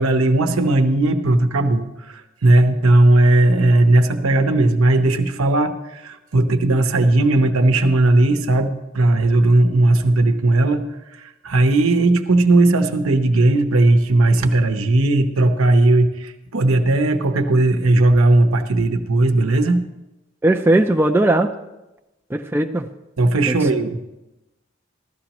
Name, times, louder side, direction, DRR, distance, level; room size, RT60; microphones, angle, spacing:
voice 1, 0.0-10.8 11.2-19.8 23.2-24.0, right 2 dB, 90° right, 7 dB, 0.9 m, -17 dB
voice 2, 20.4-21.5 22.3-22.9 23.5-23.6, right 1 dB, 10° right, 3 dB, 0.4 m, -17 dB
15.0 x 13.0 x 3.0 m, 0.98 s
head